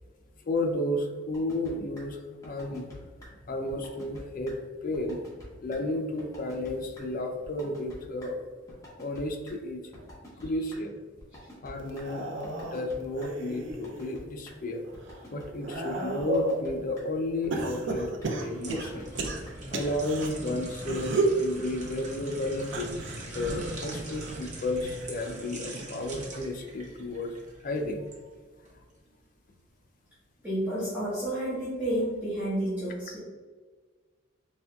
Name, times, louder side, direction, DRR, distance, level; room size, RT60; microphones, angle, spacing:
voice 1, 0.5-2.9 3.5-5.2 5.6-8.3 9.0-9.8 10.4-11.0 11.6-14.8 15.3-19.1 19.7-22.9 23.3-27.3 27.6-28.1, left 1 dB, 45° left, 4 dB, 0.5 m, -32 dB
sound 1, 1.3-1.7 2.0-2.1 2.4-2.9 3.2-3.3 3.7-4.2 4.5-4.6 4.9-5.4 5.7-5.8 6.2-6.7 6.9-7.0 7.4-8.0 8.2-8.3 8.7-9.5 9.9-10.8 11.2-12.0 12.4-12.9 13.2-13.3 13.7-14.2 14.5-14.6 14.9-15.4 15.7-15.8 16.2-16.7 17.0-17.1 17.4-17.9 18.2-18.3 18.7-19.2 19.5-19.6 19.9-20.0, equal, 15° left, 1.1 m, -48 dB
sound 2, 11.8-14.2 14.7-16.6 17.5-20.3 20.8-21.4 22.6-25.5 25.9-26.3 27.4-27.5, right 2 dB, 65° right, 0.5 m, -33 dB
sound 3, 18.2-28.2 28.6-28.8, right 2 dB, 40° right, 0.8 m, -42 dB
voice 2, 30.4-33.2, right 1 dB, 10° right, -13 dB, 1.2 m, -30 dB
4.2 x 3.4 x 2.3 m, 1.5 s
head